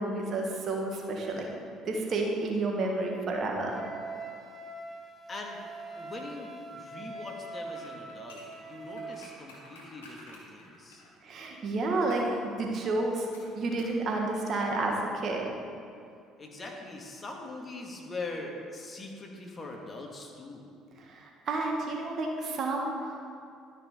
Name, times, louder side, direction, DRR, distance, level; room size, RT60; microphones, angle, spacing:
voice 1, 0.0-1.5 1.8-3.7 11.2-13.3 13.5-15.5 21.0-23.2, right 2 dB, 50° right, 0 dB, 1.7 m, -30 dB
Wind instrument woodwind instrument, 3.7-9.2, right 2 dB, 30° right, 1.6 m, -43 dB
voice 2, 5.3-5.6 6.0-11.0 16.4-20.7, left 2 dB, 35° left, 0 dB, 1.8 m, -42 dB
sound 1, 7.7-11.5 12.1-12.4 13.3-14.0 14.3-14.4, left 1 dB, 90° left, 2.0 m, -52 dB
12.5 x 5.7 x 5.1 m, 2.4 s
hypercardioid pair, 65°, 0 cm